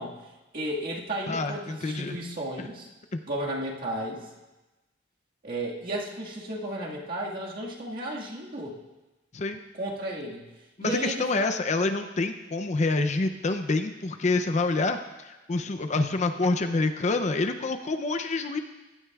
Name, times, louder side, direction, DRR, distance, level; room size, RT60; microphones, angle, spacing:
voice 1, 0.0-2.9 3.3-4.3 5.4-8.8 9.7-10.5 10.8-11.5, right 1 dB, 50° right, -3 dB, 1.8 m, -34 dB
voice 2, 1.3-2.2 3.1-3.2 9.3-9.6 10.8-15.0 15.3-18.6, left 3 dB, 40° left, 7 dB, 0.5 m, -27 dB
16.0 x 12.5 x 2.4 m, 1.1 s
head